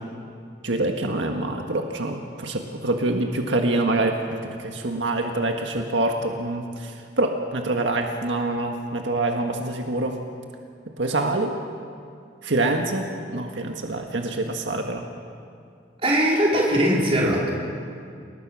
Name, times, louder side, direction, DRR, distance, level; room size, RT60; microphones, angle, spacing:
voice 1, 0.6-10.2 11.0-11.5 12.4-15.0, right 2 dB, 85° right, 3 dB, 1.7 m, -25 dB
voice 2, 16.0-17.5, equal, 30° right, -3 dB, 4.8 m, -20 dB
29.0 x 19.5 x 6.4 m, 2.3 s
head